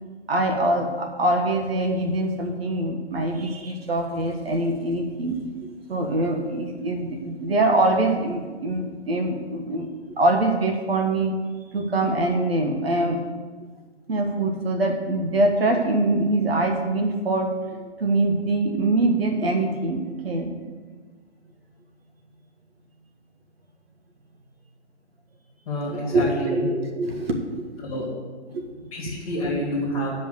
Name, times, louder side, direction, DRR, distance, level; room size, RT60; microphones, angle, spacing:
voice 1, 0.3-5.4 5.9-9.9 10.2-11.3 11.7-13.2 14.1-20.5 25.9-27.8 28.5-29.1, right 2 dB, 55° right, 3 dB, 1.4 m, -24 dB
voice 2, 25.7-26.7 27.8-28.1 28.9-30.2, equal, 15° left, -4 dB, 2.0 m, -28 dB
8.7 x 5.5 x 7.9 m, 1.4 s
figure-of-eight pair, 150°, 36 cm